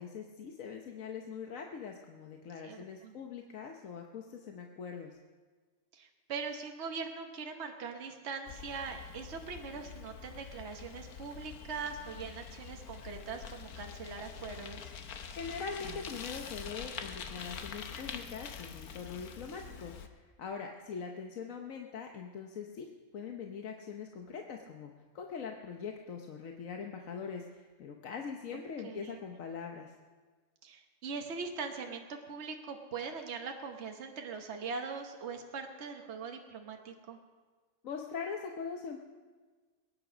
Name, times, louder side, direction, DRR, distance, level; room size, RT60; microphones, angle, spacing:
voice 1, 0.0-5.1 15.4-24.9 25.1-29.9 37.8-39.0, left 6 dB, 70° left, 3 dB, 1.3 m, -42 dB
voice 2, 2.6-3.1 5.9-14.9 19.6-19.8 28.5-29.2 30.6-37.2, right 5 dB, 55° right, 3 dB, 1.3 m, -41 dB
Bicycle, 8.5-20.1, left 7 dB, 90° left, 1.4 m, -45 dB
22.0 x 9.7 x 5.0 m, 1.4 s
omnidirectional pair, 1.5 m